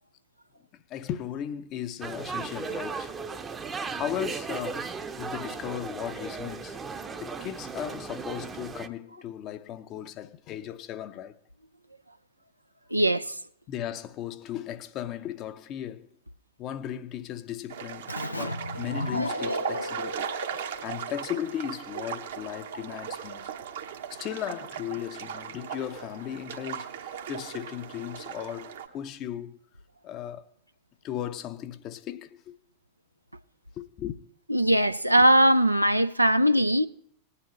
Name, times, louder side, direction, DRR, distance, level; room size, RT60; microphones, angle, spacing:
voice 1, 0.7-3.1 3.9-6.8 7.2-11.4 13.7-16.1 16.6-23.5 24.1-29.6 30.0-30.5 31.0-32.6 33.8-34.2, left 10 dB, 35° left, 0.6 m, -36 dB
sound 1, 2.0-8.9, right 5 dB, 20° right, 0.7 m, -36 dB
voice 2, 12.9-13.4 34.5-36.9, right 1 dB, 85° right, 0.4 m, -20 dB
sound 2, 17.7-28.9, right 8 dB, 60° right, 1.0 m, -38 dB
Keyboard (musical), 18.1-21.5, left 1 dB, 85° left, 0.5 m, -34 dB
19.0 x 9.6 x 3.1 m
figure-of-eight pair, 90°, 0 cm